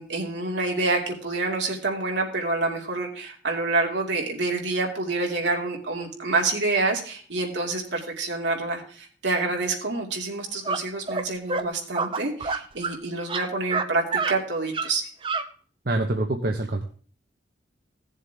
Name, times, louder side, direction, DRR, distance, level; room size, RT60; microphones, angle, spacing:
voice 1, 0.0-15.1, right 3 dB, 70° right, 0 dB, 2.7 m, -27 dB
sound 1, 10.6-10.8 11.1-11.2 11.5-11.6 11.9-13.0 13.2-13.9 14.1-14.3 14.7-14.9 15.2-15.4, right 4 dB, 30° right, 0.7 m, -27 dB
voice 2, 15.8-16.8, right 2 dB, 55° right, 3 dB, 1.0 m, -25 dB
16.5 x 7.3 x 3.5 m, 0.43 s
head